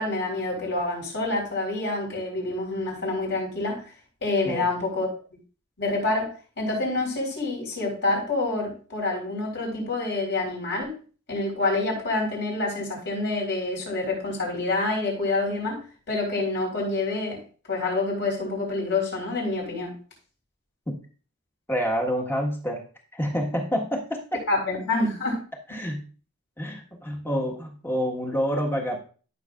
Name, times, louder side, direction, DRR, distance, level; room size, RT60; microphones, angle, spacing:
voice 1, 0.0-3.8 4.2-5.1 5.8-6.3 6.6-11.0 11.3-17.4 17.7-19.9 24.5-25.4, left 2 dB, 55° left, -1 dB, 4.4 m, -27 dB
voice 2, 21.7-22.8 23.1-24.4 25.7-26.0 26.6-29.0, equal, 10° left, 0 dB, 1.5 m, -27 dB
14.0 x 6.5 x 2.5 m, 0.38 s
head